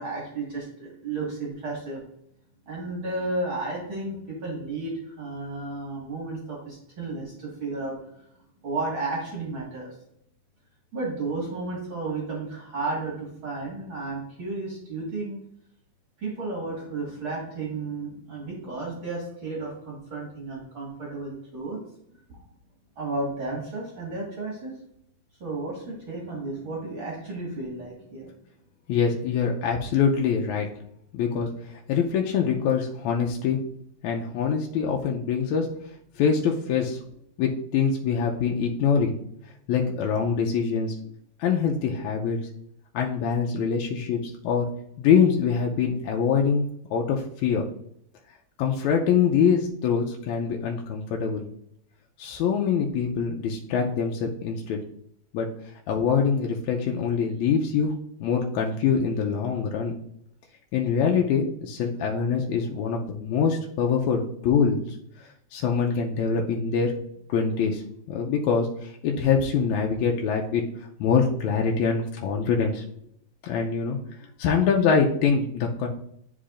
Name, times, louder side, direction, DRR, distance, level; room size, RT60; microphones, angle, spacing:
voice 1, 0.0-2.0 2.7-8.3 8.6-9.9 10.9-15.4 16.2-21.8 22.3-22.4 23.0-24.7 25.4-28.3, right 3 dB, 45° right, -4 dB, 2.2 m, -33 dB
voice 2, 28.9-30.7 31.1-31.5 31.9-33.6 34.0-35.7 36.2-37.0 37.4-39.2 39.7-40.9 41.4-42.4 42.9-44.7 45.0-46.7 46.9-47.7 48.6-51.5 52.2-54.8 55.3-55.5 55.9-57.9 58.2-59.9 60.7-64.8 65.5-66.9 67.3-67.8 68.1-70.6 71.0-72.8 73.4-74.0 74.4-75.9, left 6 dB, 85° left, 0 dB, 2.0 m, -24 dB
10.0 x 4.7 x 2.5 m, 0.71 s
omnidirectional pair, 3.3 m